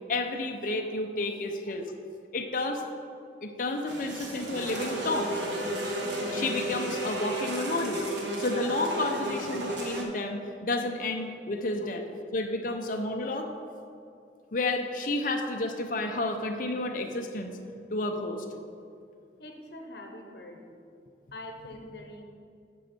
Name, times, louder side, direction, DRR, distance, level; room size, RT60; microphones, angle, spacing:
voice 1, 0.1-1.9 2.3-2.8 3.4-5.4 6.3-12.0 12.3-13.5 14.5-17.6 17.9-18.5, left 2 dB, 50° left, 4 dB, 0.7 m, -31 dB
sound 1, 3.9-10.0, right 1 dB, 85° right, 1.3 m, -33 dB
voice 2, 19.4-20.8 21.3-22.2, left 1 dB, 65° left, 3 dB, 1.1 m, -44 dB
9.8 x 6.4 x 4.4 m, 2.5 s
head